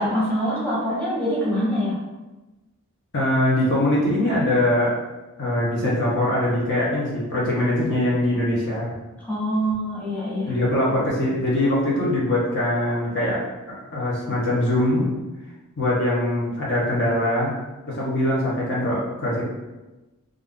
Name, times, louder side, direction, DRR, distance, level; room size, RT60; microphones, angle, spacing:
voice 1, 0.0-2.0 9.3-10.5, equal, 5° left, -9 dB, 1.0 m, -24 dB
voice 2, 3.1-5.0 5.4-8.9 10.5-13.4 13.9-15.1 15.8-17.5 17.9-19.4, left 1 dB, 50° left, -6 dB, 0.8 m, -22 dB
2.5 x 2.4 x 3.5 m, 1.1 s
head